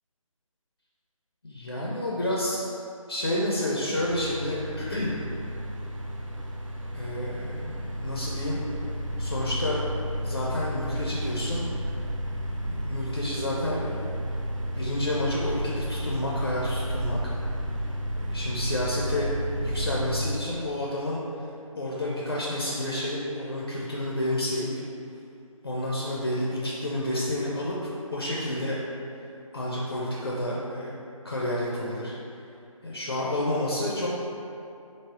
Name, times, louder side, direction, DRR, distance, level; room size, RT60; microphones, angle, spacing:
voice 1, 1.4-2.6 3.1-5.2 6.9-8.6 9.2-9.8 10.2-11.6 12.6-14.1 14.8-17.2 18.2-19.3 19.6-21.2 21.8-24.7 25.6-28.8 29.5-31.0 31.2-32.1 32.8-34.1, left 1 dB, 45° left, -5 dB, 0.4 m, -30 dB
sound 1, 3.9-20.3, equal, 65° right, 0.5 m, -32 dB
3.3 x 2.0 x 3.7 m, 2.6 s
figure-of-eight pair, 155°, 18 cm